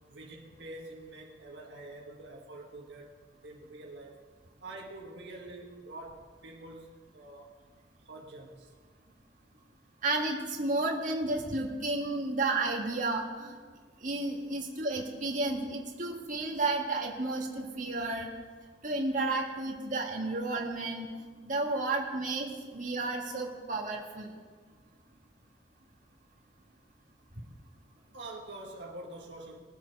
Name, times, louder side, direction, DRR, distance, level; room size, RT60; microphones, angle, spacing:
voice 1, 0.1-3.2 3.4-4.2 4.6-7.5 8.0-8.7 28.1-29.6, right 2 dB, 70° right, -1 dB, 1.6 m, -46 dB
voice 2, 10.0-13.5 14.0-18.3 18.8-21.1 21.4-22.5 22.7-24.3, right 2 dB, 45° right, -1 dB, 1.8 m, -32 dB
20.5 x 7.3 x 4.7 m, 1.5 s
head